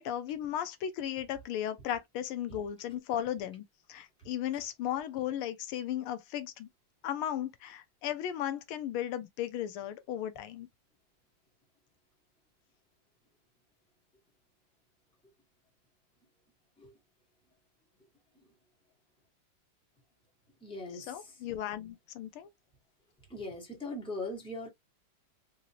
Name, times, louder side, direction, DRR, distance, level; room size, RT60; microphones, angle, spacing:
voice 1, 0.0-3.6 3.9-6.7 7.0-10.7 20.9-22.5, left 11 dB, 85° left, 1.5 m, -36 dB
voice 2, 20.6-21.4 23.3-24.7, left 2 dB, 5° left, 1.2 m, -40 dB
3.8 x 2.8 x 2.7 m
omnidirectional pair, 2.3 m